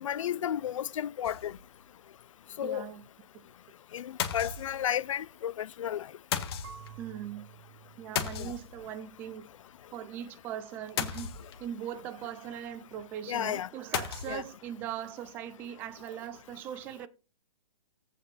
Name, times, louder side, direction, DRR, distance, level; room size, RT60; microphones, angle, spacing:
voice 1, 0.0-1.5 2.6-2.9 3.9-6.1 8.4-8.5 13.3-13.7 14.3-14.4, left 10 dB, 60° left, 0.5 m, -33 dB
sound 1, 1.2-1.8 2.2-2.3 2.5-2.6 4.2-5.1 6.3-7.0 8.2-9.0 11.0-11.8 13.9-14.5, left 8 dB, 40° left, 1.6 m, -35 dB
voice 2, 2.6-3.0 7.0-7.5 8.0-9.5 9.9-11.3 11.6-17.1, right 10 dB, 10° right, 0.4 m, -40 dB
Marimba xylophone / Wood, 6.6-9.5, right 10 dB, 45° right, 1.7 m, -52 dB
15.0 x 5.4 x 4.1 m
hypercardioid pair, 160°, 19 cm